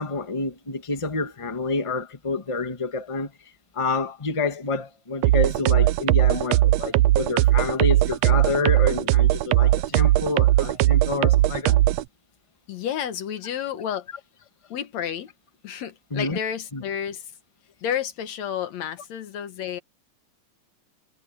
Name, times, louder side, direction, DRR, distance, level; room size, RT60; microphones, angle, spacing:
voice 1, 0.0-3.3 3.7-11.8 16.1-16.4 16.7-16.8, left 3 dB, 15° left, 1.4 m, -28 dB
sound 1, 5.2-12.0, right 15 dB, 75° right, 1.6 m, -19 dB
voice 2, 12.7-14.1 14.7-15.3 15.6-17.2 17.8-19.8, left 9 dB, 70° left, 2.5 m, -30 dB
omnidirectional pair, 3.3 m